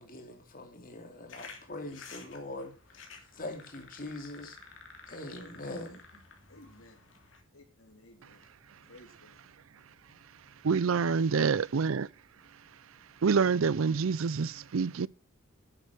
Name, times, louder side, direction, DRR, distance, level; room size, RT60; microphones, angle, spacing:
voice 1, 0.0-4.6 5.1-6.2, left 2 dB, 40° left, 2.6 m, -43 dB
sound 1, 1.3-7.4, left 4 dB, 65° left, 2.9 m, -52 dB
voice 2, 6.5-7.0 7.5-8.5 8.8-9.5 11.0-11.6, left 2 dB, 90° left, 3.4 m, -55 dB
voice 3, 10.6-12.1 13.2-15.1, right 5 dB, 80° right, 0.5 m, -27 dB
11.0 x 8.3 x 6.5 m
head